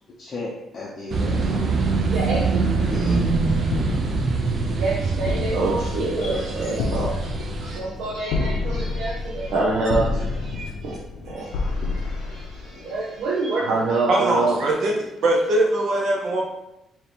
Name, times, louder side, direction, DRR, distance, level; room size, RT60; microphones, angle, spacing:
voice 1, 0.2-1.7 2.9-3.3 6.2-6.4, left 2 dB, 30° left, -4 dB, 0.6 m, -34 dB
sound 1, 1.1-7.8, right 4 dB, 40° right, 0.5 m, -24 dB
voice 2, 2.1-2.7 4.8-11.0 11.2-14.6, right 3 dB, 90° right, -4 dB, 0.7 m, -26 dB
sound 2, 3.7-13.2, left 3 dB, 80° left, 0.6 m, -29 dB
voice 3, 14.1-14.9 15.2-16.4, right 1 dB, 55° right, -1 dB, 0.9 m, -21 dB
4.4 x 2.8 x 3.4 m, 0.88 s
cardioid pair, 165°, 0 cm